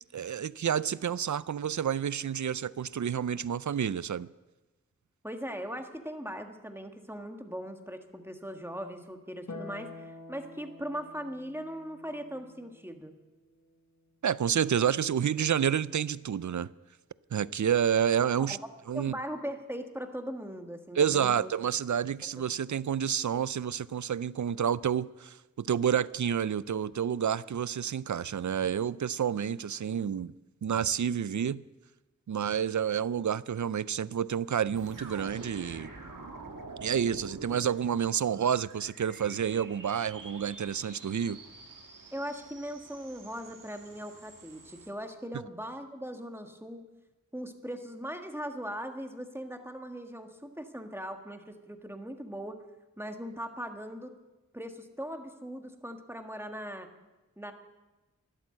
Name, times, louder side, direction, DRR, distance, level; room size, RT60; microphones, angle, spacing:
voice 1, 0.1-4.3 14.2-16.7 17.3-18.6 18.9-19.1 21.0-30.3 30.6-31.6 32.3-35.9 36.8-41.4, right 8 dB, 65° right, 0.5 m, -29 dB
voice 2, 5.2-13.1 18.5-18.6 18.9-21.5 42.1-46.9 47.3-52.6 53.0-54.1 54.5-56.9 57.4-57.5, equal, 5° right, 1.6 m, -39 dB
Harp, 9.5-16.0 17.6-18.6, left 3 dB, 60° left, 1.6 m, -50 dB
sound 1, 34.8-44.9, right 3 dB, 80° right, 1.6 m, -47 dB
12.5 x 12.0 x 7.6 m
wide cardioid pair, 45°, 32 cm